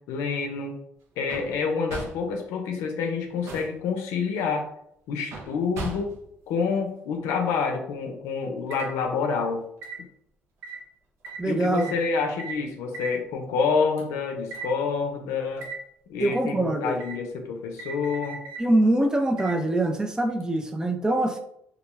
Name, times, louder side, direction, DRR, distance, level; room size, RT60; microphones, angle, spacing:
voice 1, 0.1-0.7 1.2-4.7 5.1-6.1 6.5-9.6 11.4-15.7 16.1-18.4, left 5 dB, 85° left, 4 dB, 0.5 m, -28 dB
sound 1, 1.3-1.6 1.9-2.3 3.2-3.8 5.3-6.3 8.7-8.9 9.8-10.0 10.6-10.8 11.2-11.4 11.8-12.0 12.4-12.6 12.9-13.2 14.0-14.1 14.5-14.7 15.6-15.8 17.0-17.2 17.8-18.6 19.4-19.6 20.4-20.5, right 3 dB, 75° right, 0.6 m, -37 dB
voice 2, 11.4-11.9 16.2-16.9 18.6-21.4, right 1 dB, 15° right, 4 dB, 0.4 m, -24 dB
2.3 x 2.2 x 3.1 m, 0.72 s
cardioid pair, 85°, 5 cm